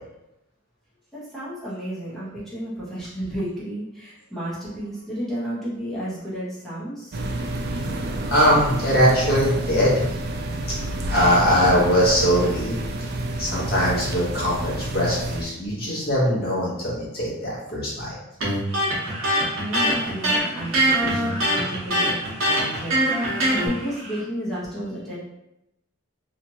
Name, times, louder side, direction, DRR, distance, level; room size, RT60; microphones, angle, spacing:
voice 1, 1.1-7.2 19.2-25.2, equal, ahead, -9 dB, 0.9 m, -32 dB
sound 1, 7.1-15.4, right 2 dB, 50° right, 0.3 m, -29 dB
voice 2, 8.3-10.0 11.1-12.8 13.4-18.2, equal, 50° left, -5 dB, 1.1 m, -21 dB
Electric guitar, 18.4-23.7, right 1 dB, 75° right, 1.0 m, -22 dB
sound 2, 18.7-24.2, right 1 dB, 30° right, 0.7 m, -40 dB
3.0 x 2.4 x 2.8 m, 0.86 s
head